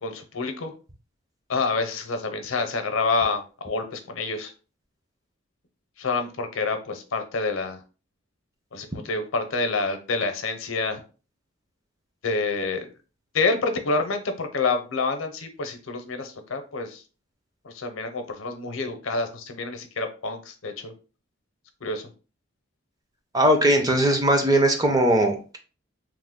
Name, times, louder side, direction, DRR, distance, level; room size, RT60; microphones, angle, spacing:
voice 1, 0.0-0.7 1.5-4.5 6.0-7.8 8.7-11.0 12.2-12.9 13.3-17.0 17.6-20.9 21.8-22.1, left 3 dB, 85° left, 7 dB, 0.6 m, -28 dB
voice 2, 23.3-25.6, right 1 dB, 20° right, 4 dB, 0.5 m, -19 dB
3.0 x 2.1 x 3.4 m, 0.35 s
head